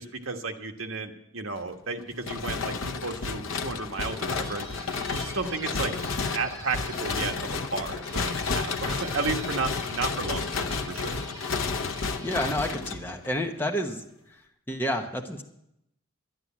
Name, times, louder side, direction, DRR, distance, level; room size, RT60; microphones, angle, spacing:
voice 1, 0.0-6.0 6.3-11.2, right 4 dB, 80° right, 4 dB, 1.4 m, -33 dB
sound 1, 2.2-13.4, left 4 dB, 75° left, 0.8 m, -31 dB
sound 2, 3.8-13.5, right 2 dB, 20° right, 2.4 m, -46 dB
voice 2, 12.2-14.0 14.3-14.4 14.7-15.4, equal, 10° left, 3 dB, 1.0 m, -29 dB
11.5 x 11.0 x 7.3 m, 0.81 s
head